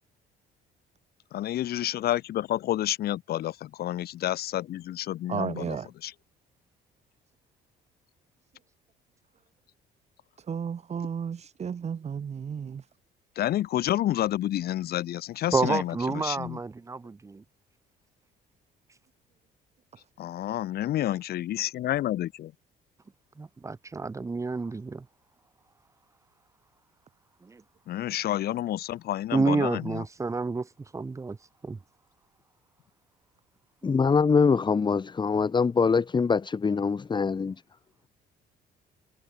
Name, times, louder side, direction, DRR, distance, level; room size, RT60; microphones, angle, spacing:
voice 1, 1.3-5.8 6.0-6.1 13.4-16.6 20.2-22.5 27.9-30.0, left 13 dB, 65° left, 4.3 m, -29 dB
voice 2, 5.3-5.9 10.5-12.8, right 7 dB, 40° right, 6.2 m, -33 dB
voice 3, 15.5-17.4 18.9-19.0 23.4-25.0 27.4-27.6 29.3-31.8, right 3 dB, 20° right, 1.0 m, -29 dB
voice 4, 33.8-37.6, left 5 dB, 25° left, 1.9 m, -23 dB
cardioid pair, 110°, 17 cm